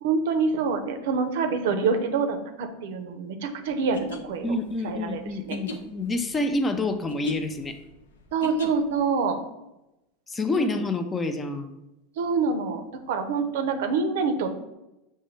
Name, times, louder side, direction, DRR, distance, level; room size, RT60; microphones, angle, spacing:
voice 1, 0.0-4.6 4.8-5.2 5.5-5.6 8.3-9.4 10.5-10.8 12.2-12.8 13.1-14.5, right 4 dB, 70° right, 6 dB, 0.5 m, -26 dB
sound 1, 3.8-9.1, left 2 dB, 80° left, 0.5 m, -38 dB
voice 2, 4.4-7.8 10.3-11.8, left 2 dB, 20° left, 7 dB, 0.4 m, -28 dB
6.2 x 2.2 x 3.1 m, 0.93 s
hypercardioid pair, 90°, 0 cm